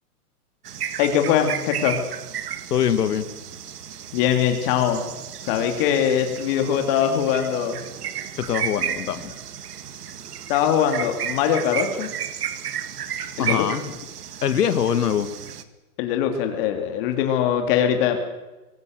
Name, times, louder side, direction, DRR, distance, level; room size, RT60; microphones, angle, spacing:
sound 1, 0.6-15.6, right 9 dB, 80° right, 2.1 m, -33 dB
voice 1, 1.0-2.0 4.1-5.0 5.4-7.8 10.5-12.1 13.4-13.6 16.0-18.2, left 9 dB, 35° left, 5 dB, 2.8 m, -22 dB
voice 2, 2.7-3.3 8.3-9.3 13.4-13.9 14.4-15.3, left 9 dB, 90° left, 10 dB, 2.0 m, -23 dB
24.0 x 18.0 x 7.8 m, 1.1 s
hypercardioid pair, 155°, 46 cm